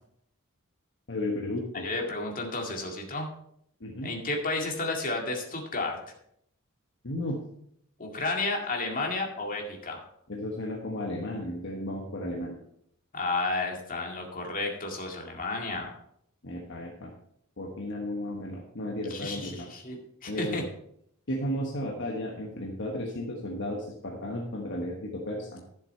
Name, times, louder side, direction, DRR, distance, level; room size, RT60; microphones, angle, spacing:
voice 1, 1.1-1.9 3.8-4.1 7.0-7.4 10.3-12.6 16.4-17.1 17.6-19.7 20.3-20.6 21.3-25.6, left 1 dB, 60° left, 0 dB, 1.3 m, -34 dB
voice 2, 1.8-3.3 4.0-6.0 8.0-10.0 13.1-15.9 19.1-20.6, left 2 dB, 40° left, 1 dB, 2.1 m, -32 dB
11.5 x 7.2 x 4.4 m, 0.71 s
head